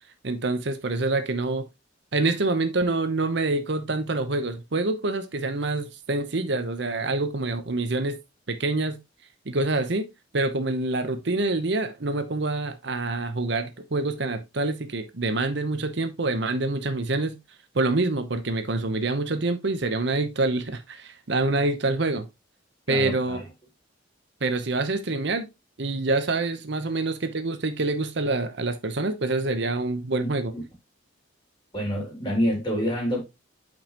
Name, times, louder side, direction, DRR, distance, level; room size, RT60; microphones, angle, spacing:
voice 1, 0.2-1.7 2.1-8.2 8.5-9.0 9.5-10.1 10.3-17.4 17.7-22.3 22.9-23.4 24.4-25.5 25.8-30.5, right 2 dB, 65° right, 0.9 m, -26 dB
voice 2, 22.9-23.4 29.0-29.1 30.2-30.6 31.7-33.2, equal, 25° left, 3.5 m, -27 dB
7.7 x 5.4 x 3.0 m
head